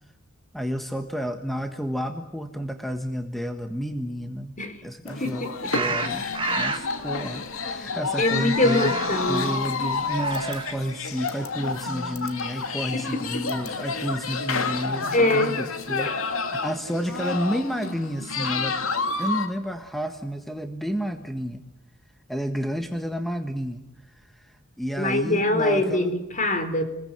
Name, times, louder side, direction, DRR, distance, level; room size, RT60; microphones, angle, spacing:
voice 1, 0.5-4.6 4.8-5.4 5.7-6.2 6.5-8.9 9.3-16.1 16.5-18.8 19.2-21.6 22.3-26.1, equal, ahead, 6 dB, 1.4 m, -30 dB
sound 1, 5.1-19.5, left 4 dB, 70° left, 2.7 m, -29 dB
voice 2, 5.2-5.7 8.2-9.5 15.1-15.6 16.0-16.1 25.0-26.8, left 1 dB, 35° left, 9 dB, 4.1 m, -23 dB
sound 2, 5.7-6.9 8.6-9.3 10.0-10.9, right 4 dB, 25° right, 1.8 m, -30 dB
29.5 x 21.5 x 8.9 m, 0.92 s
head